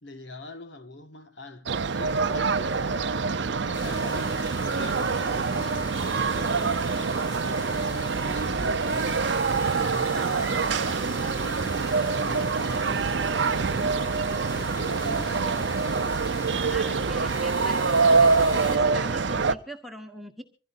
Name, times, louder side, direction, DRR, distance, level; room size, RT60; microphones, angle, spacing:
voice 1, 0.0-16.2, left 2 dB, 65° left, 1.5 m, -43 dB
sound 1, 1.7-19.5, right 4 dB, 65° right, 0.7 m, -25 dB
sound 2, 3.7-18.8, left 1 dB, 25° left, 3.1 m, -40 dB
voice 2, 16.7-20.4, equal, ahead, 1.2 m, -41 dB
25.0 x 16.0 x 2.6 m
head